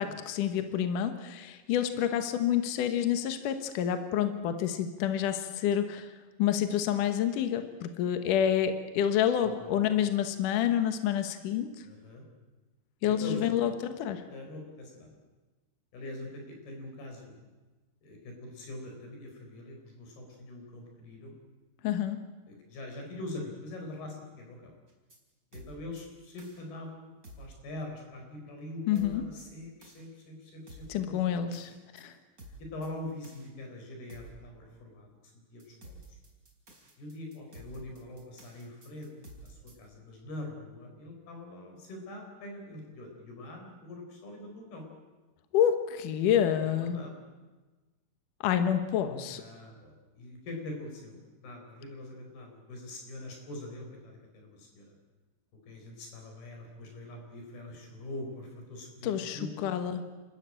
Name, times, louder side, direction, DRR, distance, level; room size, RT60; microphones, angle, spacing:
voice 1, 0.0-6.1 6.4-11.7 13.0-14.2 21.8-22.2 28.9-29.2 30.9-32.1 45.5-47.0 48.4-49.4 59.0-60.0, left 9 dB, 75° left, 8 dB, 1.9 m, -28 dB
voice 2, 9.4-9.8 11.8-12.2 13.0-13.7 14.3-15.2 15.9-17.4 18.0-21.3 22.5-24.8 25.5-31.5 32.6-36.2 37.0-39.1 39.4-44.9 46.6-47.2 49.3-55.0 55.7-59.7, left 1 dB, 55° left, 2 dB, 6.2 m, -43 dB
sound 1, 24.9-25.2 25.5-26.0 26.4-26.6 27.2-27.5 28.9-29.4 29.8-30.0 30.7-31.0 31.5-32.0 32.4-32.9 33.2-33.5 34.1-34.4 35.6-39.7, right 2 dB, 20° right, 4.0 m, -50 dB
29.5 x 13.5 x 8.8 m, 1.2 s
omnidirectional pair, 5.6 m